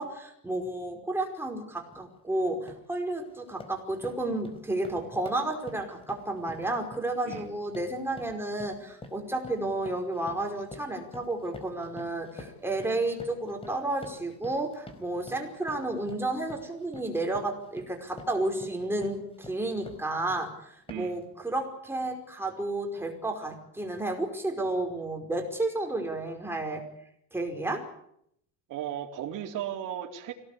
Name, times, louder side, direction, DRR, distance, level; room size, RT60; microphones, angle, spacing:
voice 1, 0.0-26.8 27.3-27.8, right 2 dB, 5° right, 2 dB, 5.2 m, -32 dB
sound 1, 1.9-2.1 2.5-2.9 3.3-20.5 20.9-21.2, left 2 dB, 15° left, 4.6 m, -48 dB
voice 2, 28.7-30.3, right 10 dB, 60° right, 1 dB, 4.1 m, -35 dB
25.5 x 18.0 x 8.7 m, 0.72 s
cardioid pair, 150°, 35 cm